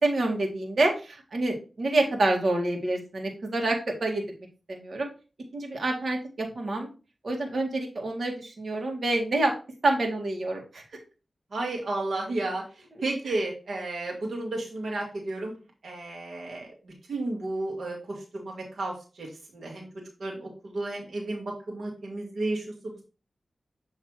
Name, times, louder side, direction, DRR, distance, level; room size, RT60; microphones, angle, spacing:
voice 1, 0.0-4.2 4.7-5.1 5.5-6.9 7.2-9.5 9.8-10.8 13.2-13.4, right 2 dB, 65° right, 1 dB, 1.7 m, -27 dB
voice 2, 11.5-12.6 13.0-15.5 15.8-16.7 17.1-18.0 18.3-19.3 19.5-19.9 20.2-22.6, right 2 dB, 80° right, -1 dB, 1.6 m, -32 dB
7.3 x 3.2 x 4.6 m, 0.32 s
cardioid pair, 60°, 0 cm